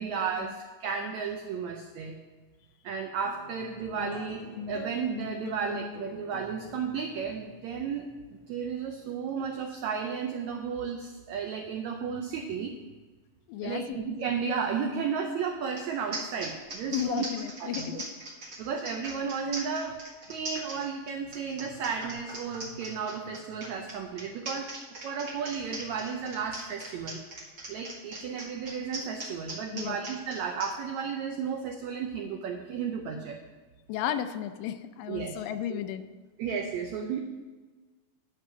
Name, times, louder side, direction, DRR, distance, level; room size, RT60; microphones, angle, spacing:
voice 1, 0.0-2.2 2.8-8.1 8.5-12.7 13.6-17.3 17.6-17.9 18.6-20.0 20.3-24.7 25.0-27.2 27.7-33.4 35.1-35.4 35.7-35.8 36.4-37.2, right 6 dB, 85° right, 3 dB, 1.6 m, -33 dB
sound 1, 3.2-9.9, left 5 dB, 60° left, 2.0 m, -43 dB
voice 2, 13.5-14.1 16.9-18.1 29.7-30.0 33.9-36.1, left 11 dB, 80° left, 10 dB, 2.2 m, -33 dB
sound 2, 15.8-15.9 16.1-30.7, right 2 dB, 45° right, 1.5 m, -40 dB
11.0 x 5.4 x 6.2 m, 1.3 s
omnidirectional pair, 4.0 m